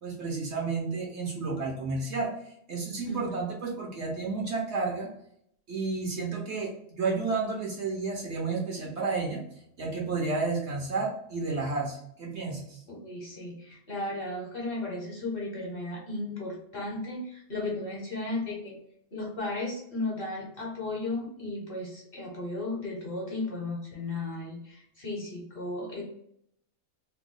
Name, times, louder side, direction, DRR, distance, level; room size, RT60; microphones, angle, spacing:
voice 1, 0.0-2.3 2.7-5.1 5.7-9.4 9.8-12.8, right 3 dB, 60° right, -2 dB, 1.0 m, -31 dB
voice 2, 3.1-3.4 12.9-18.8 19.1-26.0, left 2 dB, 45° left, -3 dB, 1.1 m, -35 dB
2.9 x 2.2 x 3.7 m, 0.70 s
omnidirectional pair, 1.5 m